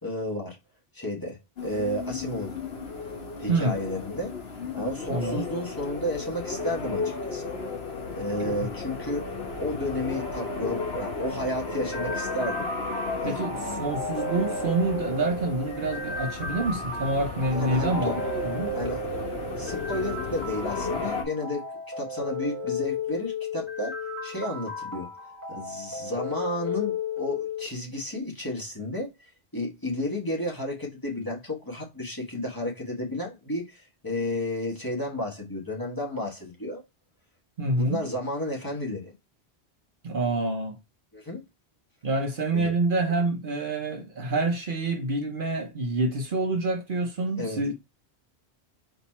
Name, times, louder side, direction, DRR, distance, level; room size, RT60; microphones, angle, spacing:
voice 1, 0.0-0.6 0.9-2.5 3.4-4.3 4.7-7.5 8.1-9.3 9.6-12.7 13.2-13.8 17.5-18.2 18.7-19.0 19.6-21.7 22.0-25.1 25.5-36.8 37.6-39.1 41.1-41.4 42.5-42.7 47.4-47.6, left 1 dB, 20° left, 1.4 m, -32 dB
sound 1, 1.6-21.2, left 4 dB, 70° left, 1.2 m, -34 dB
voice 2, 3.5-3.8 5.1-5.4 8.5-8.7 13.2-18.1 18.4-18.8 37.6-38.0 40.0-40.7 42.0-47.7, right 2 dB, 55° right, 0.9 m, -27 dB
sound 2, 11.7-27.7, left 2 dB, 15° right, 1.5 m, -34 dB
4.3 x 2.9 x 4.2 m
omnidirectional pair, 1.1 m